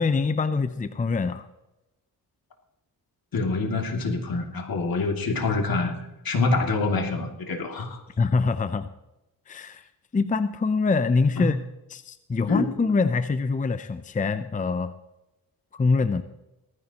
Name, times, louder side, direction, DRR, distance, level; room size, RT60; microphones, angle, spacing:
voice 1, 0.0-1.5 8.2-8.9 9.5-11.6 11.9-14.9 15.7-16.2, left 4 dB, 20° left, 11 dB, 0.6 m, -24 dB
voice 2, 3.3-6.0 6.2-8.0 11.4-11.5 12.5-12.7, left 3 dB, 65° left, 2 dB, 2.7 m, -26 dB
18.5 x 15.0 x 3.0 m, 0.96 s
cardioid pair, 95°, 39 cm